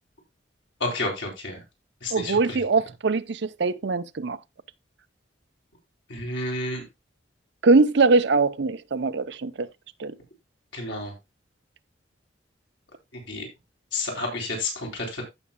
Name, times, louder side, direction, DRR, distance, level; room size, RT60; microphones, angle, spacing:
voice 1, 0.8-1.6 2.0-2.6 6.1-6.8 10.7-11.1 13.1-13.5 13.9-15.2, left 2 dB, 85° left, 3.9 m, -30 dB
voice 2, 2.1-4.4 7.6-9.7 10.0-10.1, right 3 dB, 70° right, 0.6 m, -22 dB
15.0 x 6.1 x 2.2 m
head